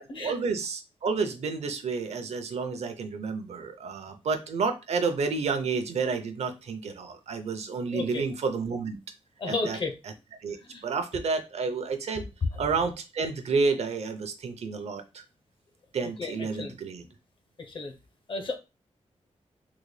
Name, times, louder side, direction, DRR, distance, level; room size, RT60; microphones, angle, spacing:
voice 1, 0.0-9.0 9.4-9.8 10.0-10.1 10.4-10.6 10.8-12.3 12.6-15.2 15.9-17.1, right 4 dB, 70° right, 0.5 m, -30 dB
voice 2, 7.9-8.2 9.4-9.9 10.7-10.8 16.0-16.7 17.7-17.9 18.3-18.6, left 3 dB, 45° left, 0.6 m, -33 dB
3.8 x 2.1 x 3.2 m
wide cardioid pair, 155°, 12 cm